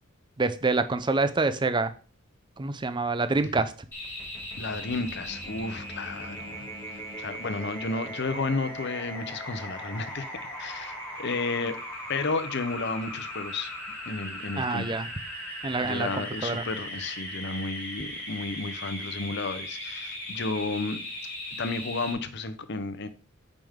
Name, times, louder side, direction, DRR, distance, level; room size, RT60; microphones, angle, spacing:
voice 1, 0.4-1.9 2.6-3.7 14.6-15.1 15.6-16.6, right 3 dB, 20° right, 0.5 m, -26 dB
sound 1, 3.9-22.1, equal, 10° left, 2.4 m, -38 dB
voice 2, 4.6-10.3 10.6-11.8 12.1-13.7 14.1-14.9 15.8-21.0 21.6-23.1, left 3 dB, 55° left, 0.8 m, -32 dB
8.9 x 5.2 x 3.6 m
head